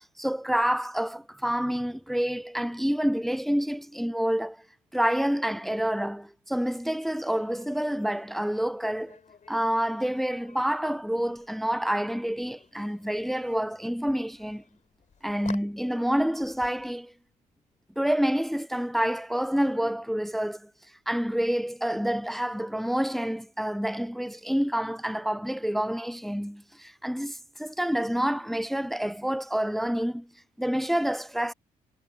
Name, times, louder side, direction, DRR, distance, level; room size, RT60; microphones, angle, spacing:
voice 1, 0.2-4.6 4.9-9.2 9.5-14.6 15.2-17.1 18.0-20.7 21.1-30.3 30.6-31.5, equal, ahead, 0.5 m, -28 dB
sound 1, 7.3-18.6, left 6 dB, 45° left, 3.5 m, -53 dB
hypercardioid pair, 50°, 18 cm